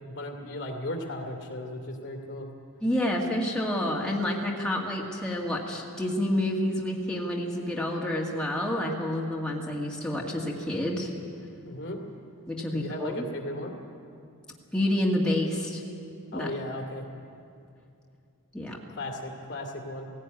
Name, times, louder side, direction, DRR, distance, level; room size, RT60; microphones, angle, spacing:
voice 1, 0.0-2.5 11.7-12.0 12.7-13.8 16.3-17.0 18.9-20.1, left 1 dB, 55° left, 2 dB, 2.4 m, -36 dB
voice 2, 2.8-11.1 12.5-13.3 14.7-15.8 16.3-16.5 18.5-18.8, left 1 dB, 5° left, -3 dB, 2.0 m, -28 dB
17.0 x 16.5 x 9.6 m, 2.5 s
head